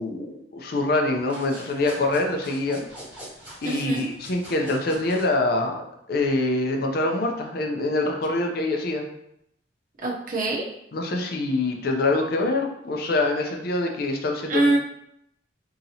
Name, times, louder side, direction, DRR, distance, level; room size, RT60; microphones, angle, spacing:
voice 1, 0.0-2.9 3.6-9.0 10.9-14.8, left 2 dB, 55° left, 2 dB, 0.5 m, -25 dB
sound 1, 1.1-5.3, equal, 10° right, 1.0 m, -43 dB
voice 2, 3.6-4.1 10.0-10.6 14.5-14.8, right 2 dB, 45° right, -1 dB, 0.7 m, -24 dB
3.9 x 2.9 x 2.8 m, 0.76 s
head